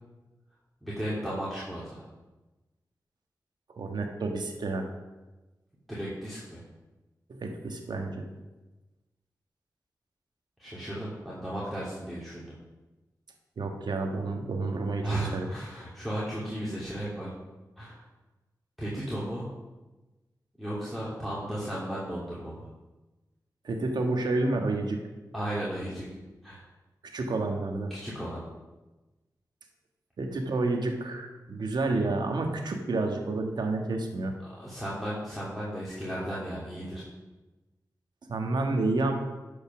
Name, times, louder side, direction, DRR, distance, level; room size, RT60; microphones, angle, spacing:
voice 1, 0.8-2.0 5.9-6.6 10.6-12.5 15.0-17.3 17.8-18.0 18.8-19.5 20.6-22.7 25.3-26.1 26.4-26.6 27.9-28.4 34.4-37.1, right 1 dB, ahead, -8 dB, 3.0 m, -35 dB
voice 2, 3.8-4.9 7.3-8.2 13.6-15.4 23.6-25.0 27.1-27.9 30.2-34.3 38.3-39.1, right 2 dB, 85° right, 3 dB, 1.4 m, -29 dB
11.0 x 5.5 x 5.9 m, 1.1 s
cardioid pair, 50°, 7 cm